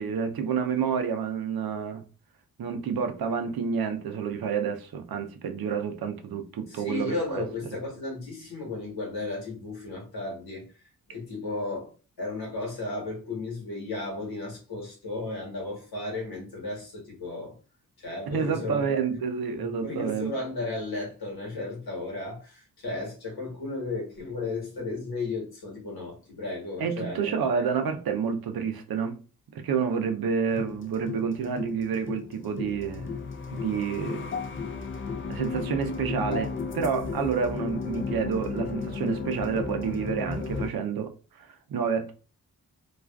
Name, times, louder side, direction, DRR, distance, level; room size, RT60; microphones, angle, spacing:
voice 1, 0.0-2.0 2.6-7.4 18.3-20.3 26.8-29.2 29.5-33.1 33.5-34.3 35.3-42.1, right 6 dB, 80° right, 0.5 m, -29 dB
voice 2, 6.7-10.7 11.1-11.9 12.2-17.6 18.0-19.0 19.8-27.3 27.6-27.7, left 2 dB, 85° left, 1.2 m, -34 dB
sound 1, 30.5-40.7, left 5 dB, 35° left, 0.4 m, -34 dB
2.4 x 2.3 x 2.2 m
cardioid pair, 70°, 36 cm